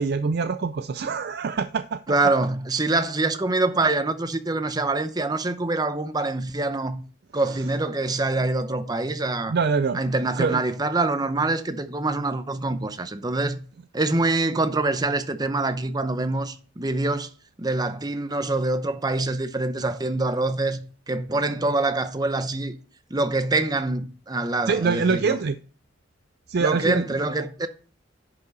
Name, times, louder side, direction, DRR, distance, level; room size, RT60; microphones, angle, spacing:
voice 1, 0.0-2.0 9.5-10.0 10.4-10.6 24.7-25.6 26.5-27.0, right 5 dB, 55° right, 0.4 m, -24 dB
voice 2, 2.1-7.0 7.3-9.5 9.9-13.6 13.9-17.3 17.6-22.8 23.1-25.4 26.6-27.7, right 2 dB, 20° right, 0.8 m, -25 dB
10.5 x 5.6 x 4.0 m
head